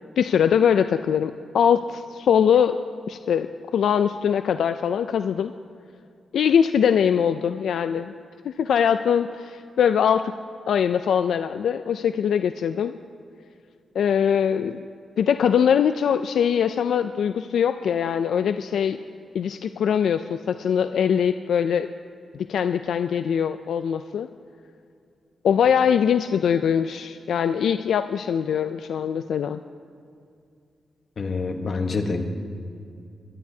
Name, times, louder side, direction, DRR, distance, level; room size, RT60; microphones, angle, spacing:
voice 1, 0.2-2.8 3.1-3.5 3.7-5.5 6.3-8.1 8.4-10.3 10.7-12.9 14.0-14.8 15.2-19.0 19.3-21.9 22.5-24.3 25.4-29.6, left 8 dB, 80° left, 9 dB, 0.3 m, -22 dB
voice 2, 31.2-32.2, left 4 dB, 45° left, 3 dB, 1.1 m, -26 dB
22.5 x 11.5 x 2.8 m, 2.4 s
wide cardioid pair, 150°, 0 cm